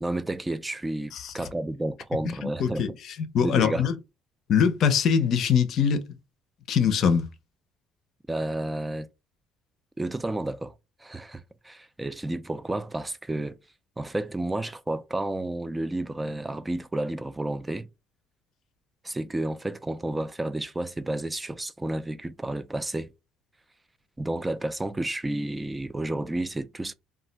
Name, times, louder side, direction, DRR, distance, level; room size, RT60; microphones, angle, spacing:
voice 1, 0.0-2.9 3.4-3.9 8.3-9.1 10.0-10.7 11.0-13.6 14.0-17.9 19.0-23.1 24.2-26.9, right 1 dB, 10° right, 0.3 m, -31 dB
voice 2, 2.4-2.9 3.3-3.9 4.5-6.0 6.7-7.3, left 7 dB, 55° left, 0.5 m, -22 dB
2.3 x 2.1 x 3.8 m
cardioid pair, 120°, 0 cm